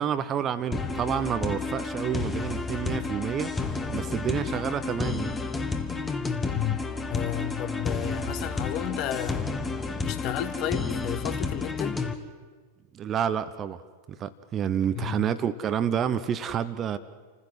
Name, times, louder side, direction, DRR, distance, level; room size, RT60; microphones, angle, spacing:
voice 1, 0.0-5.4 12.9-13.8 14.1-17.0, right 8 dB, 25° right, 12 dB, 1.0 m, -29 dB
sound 1, 0.7-12.1, left 4 dB, 15° left, 1.6 m, -31 dB
voice 2, 6.5-9.4 10.0-12.0 14.9-15.3, left 11 dB, 40° left, 10 dB, 1.6 m, -32 dB
29.0 x 15.5 x 7.8 m, 1.5 s
figure-of-eight pair, 90°, 0 cm